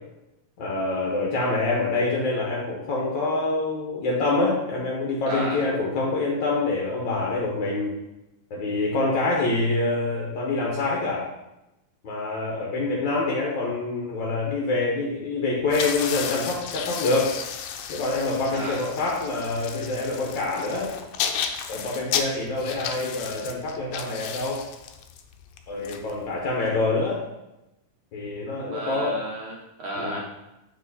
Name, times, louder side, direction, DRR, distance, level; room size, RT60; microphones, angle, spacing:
voice 1, 0.6-7.9 8.5-11.2 12.0-17.4 17.9-20.9 21.7-24.6 25.7-27.2 28.1-29.2 30.0-30.2, left 3 dB, 60° left, -3 dB, 1.2 m, -26 dB
voice 2, 5.3-5.6 18.5-18.9 28.6-30.2, right 2 dB, 70° right, -2 dB, 1.3 m, -33 dB
sound 1, 15.6-26.7, left 8 dB, 85° left, 1.5 m, -33 dB
7.4 x 4.4 x 4.1 m, 0.94 s
omnidirectional pair, 3.4 m